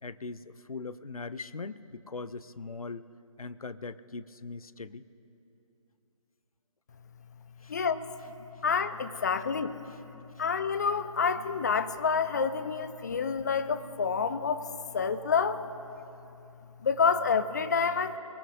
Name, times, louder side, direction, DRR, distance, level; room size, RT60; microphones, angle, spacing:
voice 1, 0.0-3.1 3.4-5.1 7.6-7.8 13.1-13.2, left 4 dB, 75° left, 15 dB, 0.6 m, -40 dB
voice 2, 7.7-8.1 8.6-9.8 10.4-15.6 16.8-18.2, left 5 dB, 30° left, 12 dB, 0.5 m, -28 dB
23.0 x 19.0 x 2.7 m, 2.8 s
figure-of-eight pair, 145°, 18 cm